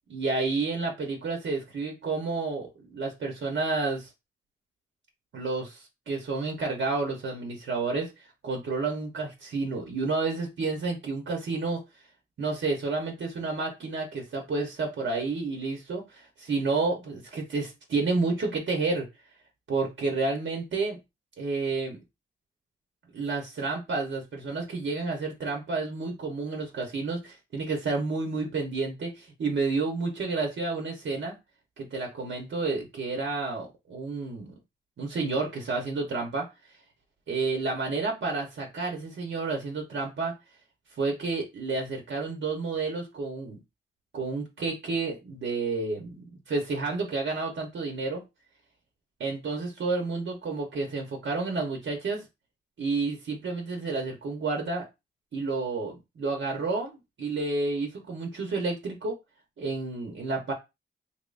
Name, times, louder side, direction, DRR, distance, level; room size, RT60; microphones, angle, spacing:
voice 1, 0.1-4.1 5.3-11.8 12.4-19.1 19.7-21.0 21.4-22.0 23.1-31.3 31.8-34.5 35.0-36.5 37.3-40.3 41.0-43.6 44.1-48.2 49.2-52.2 52.8-54.8 55.3-59.2 59.6-60.5, right 3 dB, 75° right, 1 dB, 1.2 m, -30 dB
3.6 x 3.1 x 2.6 m, 0.24 s
cardioid pair, 75°, 20 cm